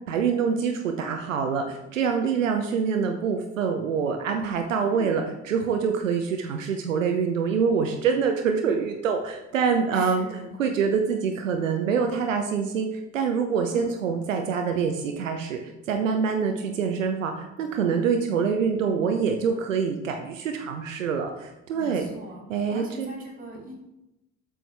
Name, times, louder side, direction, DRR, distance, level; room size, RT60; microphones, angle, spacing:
voice 1, 0.1-5.2 5.5-22.1 22.5-23.1, right 6 dB, 75° right, 4 dB, 0.7 m, -25 dB
voice 2, 9.9-10.5 13.7-13.9 21.7-23.7, equal, 20° right, -1 dB, 2.7 m, -40 dB
7.7 x 6.2 x 3.4 m, 0.93 s
figure-of-eight pair, 55°, 38 cm